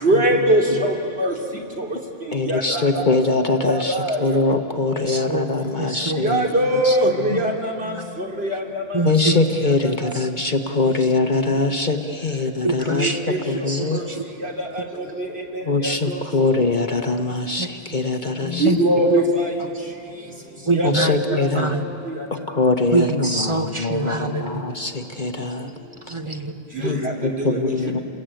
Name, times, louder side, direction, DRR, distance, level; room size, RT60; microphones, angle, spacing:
voice 1, 0.0-0.9 1.2-1.3 2.5-2.8 3.7-4.2 6.2-7.5 7.8-7.9 8.4-8.5 12.9-13.4 18.6-19.5 20.7-21.1 21.4-21.5 26.7-26.9 27.4-27.6, right 1 dB, 55° right, -1 dB, 3.4 m, -20 dB
voice 2, 2.3-6.5 6.8-7.0 7.3-7.4 9.0-13.1 13.5-14.0 15.7-18.7 20.8-21.8 22.5-25.7 26.8-28.0, left 3 dB, 40° left, 6 dB, 1.1 m, -22 dB
voice 3, 4.9-6.3 8.9-9.6 10.1-10.3 10.8-10.9 11.5-11.6 12.6-13.2 13.7-14.3 17.6-17.7 18.6-18.8 20.7-21.8 22.9-24.6 26.1-26.9, right 2 dB, 25° right, 5 dB, 1.4 m, -25 dB
29.0 x 21.0 x 9.0 m, 2.7 s
omnidirectional pair, 1.3 m